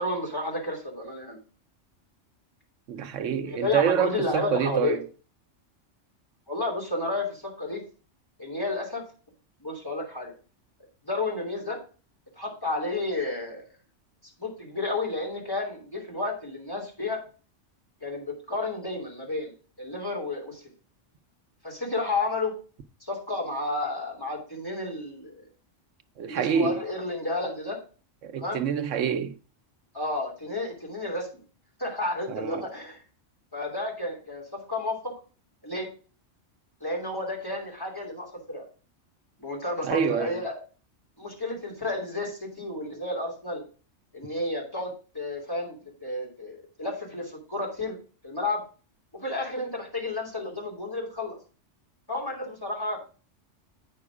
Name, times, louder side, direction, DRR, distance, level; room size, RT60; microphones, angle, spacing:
voice 1, 0.0-1.4 3.4-5.0 6.5-7.8 8.4-9.0 9.6-10.3 11.1-11.8 12.4-13.6 14.4-17.2 18.0-19.5 19.8-20.6 21.6-22.5 23.0-25.5 26.2-27.8 28.4-28.6 29.9-31.3 31.8-33.0 33.5-35.1 35.6-35.9 36.8-38.7 39.4-40.6 41.2-43.6 44.1-48.0 48.2-48.6 49.1-51.4 52.1-53.0, left 2 dB, 20° left, 3.0 m, -31 dB
voice 2, 2.9-5.0 26.2-26.8 28.2-29.4 32.3-32.7 39.8-40.4, right 7 dB, 80° right, 1.1 m, -27 dB
8.5 x 5.7 x 4.8 m
omnidirectional pair, 1.3 m